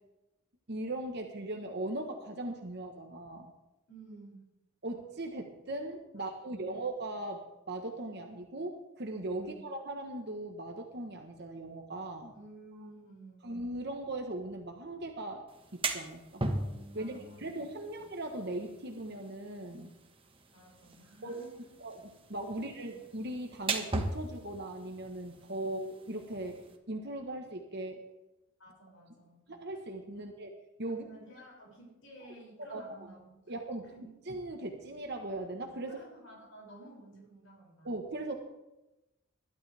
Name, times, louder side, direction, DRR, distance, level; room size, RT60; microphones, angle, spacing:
voice 1, 0.7-3.5 4.8-12.3 13.4-15.5 15.7-16.4 16.9-19.9 21.2-21.4 21.8-26.6 26.9-28.0 29.5-30.5 30.8-31.1 32.6-32.8 33.5-36.0 37.8-38.3, right 1 dB, 50° right, 3 dB, 1.3 m, -39 dB
voice 2, 3.9-4.4 6.1-6.7 9.4-9.6 12.3-13.5 16.9-17.6 17.9-18.0 20.5-21.5 22.8-22.9 28.6-29.4 30.2-30.3 30.9-33.5 33.9-34.1 35.8-37.9, right 1 dB, 70° left, -4 dB, 6.5 m, -53 dB
sound 1, 15.5-26.8, right 2 dB, 25° right, 1.4 m, -40 dB
21.5 x 12.0 x 3.5 m, 0.98 s
head